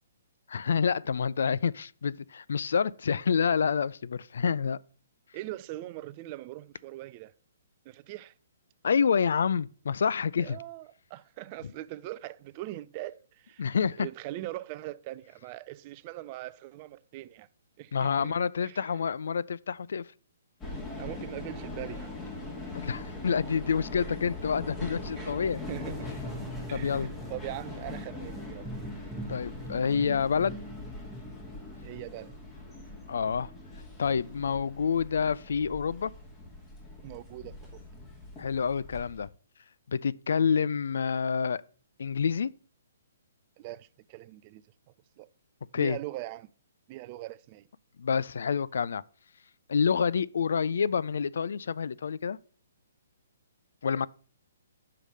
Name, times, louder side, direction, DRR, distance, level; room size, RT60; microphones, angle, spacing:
voice 1, 0.5-4.8 8.8-10.6 13.6-14.1 17.9-20.0 22.8-25.6 26.7-27.1 29.3-30.6 33.1-33.5 34.0-36.1 38.4-39.3 39.9-41.6 42.0-42.5 45.7-46.0 48.0-49.0 49.7-52.4 53.8-54.1, left 6 dB, 65° left, 0.3 m, -28 dB
voice 2, 5.3-7.3 7.9-8.3 10.4-13.7 14.0-17.5 17.8-18.3 18.6-19.0 21.0-22.1 25.2-25.4 25.7-26.1 26.7-28.7 31.8-32.3 37.0-37.8 43.6-44.6 45.2-45.3 45.7-46.5 46.9-47.7 54.0-54.1, right 16 dB, 35° right, 0.3 m, -41 dB
sound 1, 20.6-39.3, left 2 dB, 25° left, 2.6 m, -42 dB
sound 2, 25.6-32.3, equal, ahead, 1.2 m, -43 dB
5.8 x 4.8 x 6.4 m
figure-of-eight pair, 130°, 0 cm